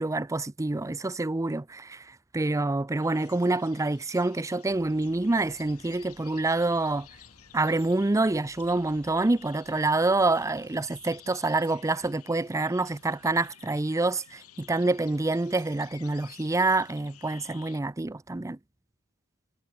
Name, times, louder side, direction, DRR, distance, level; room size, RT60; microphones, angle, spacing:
voice 1, 0.0-2.0 2.3-7.1 7.5-18.6, right 2 dB, 15° right, 0.5 m, -27 dB
sound 1, 3.0-17.8, left 10 dB, 85° left, 7.0 m, -53 dB
sound 2, 4.7-11.3, left 2 dB, 30° left, 4.5 m, -58 dB
head